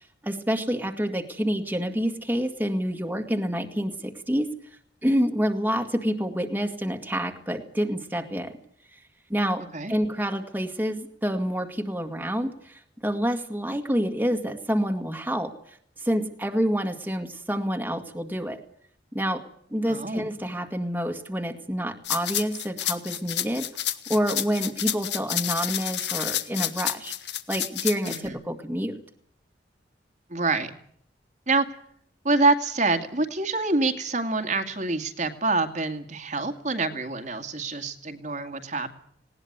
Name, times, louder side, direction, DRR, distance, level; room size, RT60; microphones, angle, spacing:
voice 1, 0.2-4.5 5.0-8.5 9.3-9.6 9.9-15.5 16.0-18.6 19.1-19.4 19.7-23.7 24.1-27.1 27.5-29.0, equal, 10° right, 4 dB, 1.9 m, -28 dB
voice 2, 19.9-20.3 28.0-28.4 30.3-30.7 31.5-31.7 32.2-38.9, right 3 dB, 40° right, 7 dB, 2.1 m, -26 dB
sound 1, 22.0-28.2, left 12 dB, 65° left, 1.7 m, -29 dB
19.5 x 18.5 x 8.1 m, 0.64 s
head